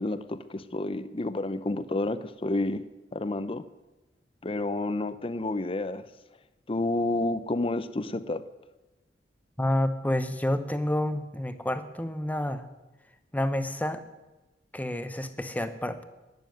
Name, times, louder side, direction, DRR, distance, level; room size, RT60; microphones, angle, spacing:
voice 1, 0.0-2.8 3.1-3.6 4.4-6.1 6.7-8.4, left 2 dB, 30° left, 13 dB, 0.6 m, -30 dB
voice 2, 9.6-12.7 13.3-14.0 14.7-16.0, left 1 dB, 10° left, 10 dB, 0.9 m, -29 dB
12.5 x 9.7 x 9.3 m, 1.1 s
head